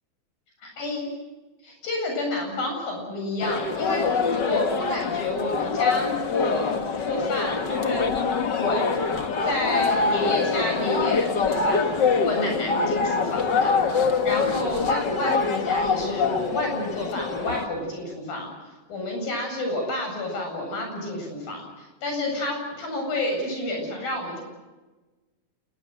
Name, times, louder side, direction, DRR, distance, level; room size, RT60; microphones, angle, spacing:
voice 1, 0.6-1.1 1.6-6.7 7.0-8.1 8.5-8.9 9.4-11.8 12.2-18.5 18.9-24.4, left 2 dB, 85° left, 2 dB, 9.8 m, -29 dB
sound 1, 3.4-17.7, left 4 dB, 40° left, 1.7 m, -25 dB
29.0 x 21.5 x 7.9 m, 1.2 s
omnidirectional pair, 4.0 m